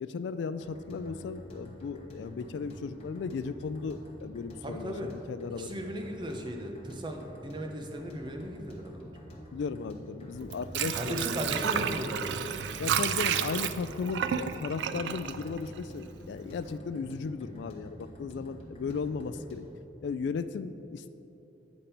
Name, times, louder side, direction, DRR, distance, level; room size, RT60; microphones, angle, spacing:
voice 1, 0.0-4.9 5.3-5.9 9.5-11.2 12.8-19.7 20.0-21.1, left 5 dB, 75° left, 12 dB, 0.3 m, -36 dB
sound 1, 0.6-19.8, equal, 35° left, 1.0 m, -48 dB
voice 2, 4.6-5.1 5.6-9.1 10.9-12.6, equal, 25° right, 3 dB, 0.6 m, -36 dB
Water / Sink (filling or washing), 10.3-16.2 16.6-16.7, right 8 dB, 75° right, 0.3 m, -31 dB
8.7 x 5.2 x 4.4 m, 2.9 s
head